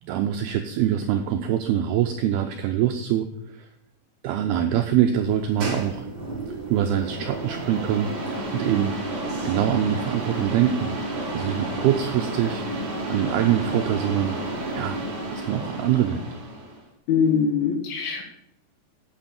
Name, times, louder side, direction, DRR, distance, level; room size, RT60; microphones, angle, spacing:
voice 1, 0.0-3.7 4.2-6.1 6.5-8.1 8.5-9.0 9.5-11.0 11.3-14.4 14.7-15.0 15.3-16.3, right 10 dB, 80° right, 5 dB, 2.4 m, -24 dB
sound 1, 5.2-16.8, right 2 dB, 40° right, 1.4 m, -31 dB
voice 2, 17.1-18.2, left 6 dB, 85° left, 2 dB, 4.6 m, -22 dB
8.7 x 8.0 x 7.0 m, 0.79 s
omnidirectional pair, 5.2 m